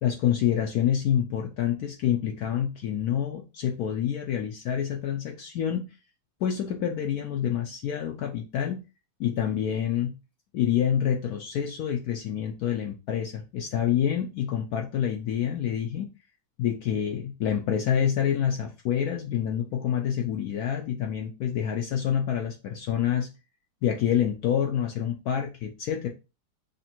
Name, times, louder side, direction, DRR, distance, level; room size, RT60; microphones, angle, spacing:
voice 1, 0.0-5.9 6.4-8.8 9.2-10.1 10.5-16.1 16.6-23.3 23.8-26.1, left 9 dB, 85° left, 2 dB, 0.8 m, -27 dB
3.3 x 2.6 x 4.2 m, 0.29 s
omnidirectional pair, 2.2 m